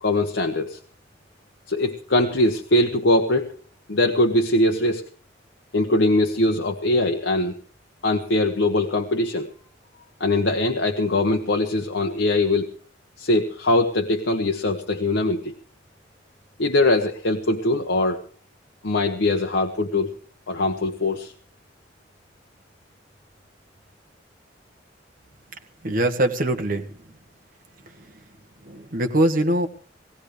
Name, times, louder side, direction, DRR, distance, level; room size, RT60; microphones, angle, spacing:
voice 1, 0.0-0.8 1.7-3.5 3.9-5.0 5.7-7.6 8.0-9.5 10.2-12.7 13.2-15.5 16.6-18.2 18.8-20.1 20.5-21.3, left 2 dB, 75° left, 3 dB, 1.1 m, -22 dB
voice 2, 25.8-26.9 28.6-29.7, right 1 dB, 50° right, 5 dB, 1.4 m, -22 dB
20.0 x 16.0 x 3.3 m, 0.39 s
head